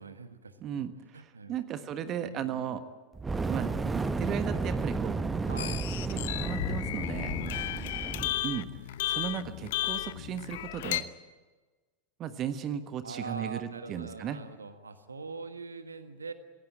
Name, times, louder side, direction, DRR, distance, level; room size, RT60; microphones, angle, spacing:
voice 1, 0.0-0.9 1.1-1.6 2.0-2.8 5.5-5.9 7.5-8.4 13.0-16.3, right 4 dB, 75° right, 10 dB, 1.6 m, -43 dB
voice 2, 0.6-2.8 3.5-5.1 6.1-7.3 8.4-8.7 9.1-11.1 12.2-14.4, right 9 dB, 30° right, 11 dB, 1.4 m, -36 dB
Fire, 3.1-8.4, right 3 dB, 15° right, 1.0 m, -32 dB
sound 1, 5.6-11.0, left 14 dB, 55° left, 0.9 m, -34 dB
25.5 x 17.0 x 8.8 m, 1.3 s
figure-of-eight pair, 90°, 0 cm